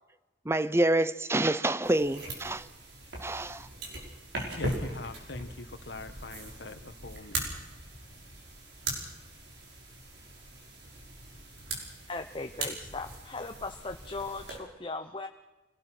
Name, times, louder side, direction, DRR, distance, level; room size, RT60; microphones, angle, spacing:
voice 1, 0.5-2.6 3.2-3.7, right 1 dB, 15° right, 0.6 m, -27 dB
sound 1, 1.8-14.6, right 1 dB, 70° right, 5.6 m, -40 dB
voice 2, 4.5-7.4, left 2 dB, 75° left, 1.5 m, -42 dB
voice 3, 12.1-15.3, left 3 dB, 30° left, 0.9 m, -38 dB
25.5 x 18.0 x 6.1 m
head